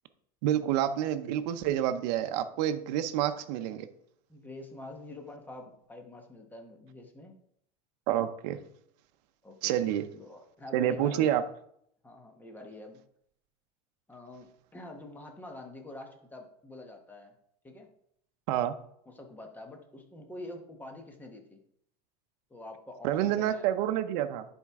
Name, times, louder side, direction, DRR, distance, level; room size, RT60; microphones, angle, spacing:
voice 1, 0.4-3.9 8.1-8.6 9.6-10.1 10.7-11.4 18.5-18.7 23.0-24.5, right 11 dB, 75° right, 10 dB, 0.7 m, -28 dB
voice 2, 4.3-7.3 9.4-9.7 10.1-11.4 12.0-13.0 14.1-17.3 17.6-17.9 19.1-21.6 22.5-23.7, left 2 dB, 10° left, 3 dB, 1.1 m, -46 dB
10.5 x 4.5 x 3.6 m, 0.70 s
supercardioid pair, 145°, 21 cm